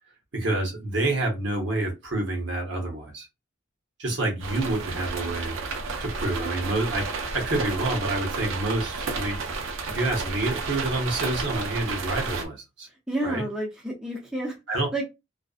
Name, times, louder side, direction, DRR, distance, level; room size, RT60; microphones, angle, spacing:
voice 1, 0.3-3.3 4.0-5.5 6.0-9.4 9.9-12.9 13.2-13.5 14.7-15.0, right 2 dB, 60° right, 0.8 m, -28 dB
sound 1, 4.4-12.5, right 4 dB, 85° right, 0.5 m, -32 dB
voice 2, 13.1-14.6 14.9-15.0, right 1 dB, 5° right, 0.4 m, -30 dB
2.5 x 2.1 x 2.3 m
head